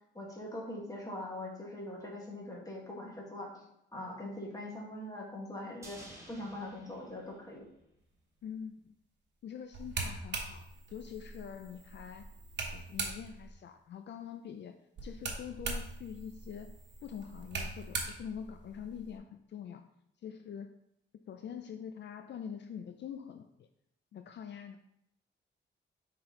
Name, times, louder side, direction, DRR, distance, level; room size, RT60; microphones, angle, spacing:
voice 1, 0.1-3.6 3.9-7.6, left 1 dB, 20° left, -2 dB, 1.6 m, -42 dB
sound 1, 5.8-8.2 8.5-8.6, right 1 dB, 15° right, 1.5 m, -54 dB
voice 2, 8.4-9.0 9.4-12.3 12.7-16.7 17.0-19.9 20.2-20.7 21.3-23.7 24.1-24.8, left 8 dB, 65° left, 7 dB, 0.4 m, -45 dB
sound 2, 9.7-13.5 15.0-19.2, right 3 dB, 65° right, 1.1 m, -41 dB
6.0 x 4.2 x 3.8 m, 0.79 s
wide cardioid pair, 115°, 19 cm